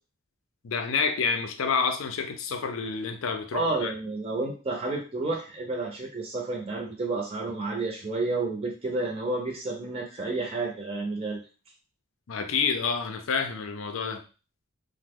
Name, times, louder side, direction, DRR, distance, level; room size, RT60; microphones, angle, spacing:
voice 1, 0.6-3.9 12.3-14.2, left 5 dB, 70° left, 7 dB, 0.5 m, -28 dB
voice 2, 3.5-11.4, right 3 dB, 30° right, -1 dB, 0.6 m, -30 dB
3.0 x 2.1 x 3.5 m, 0.34 s
head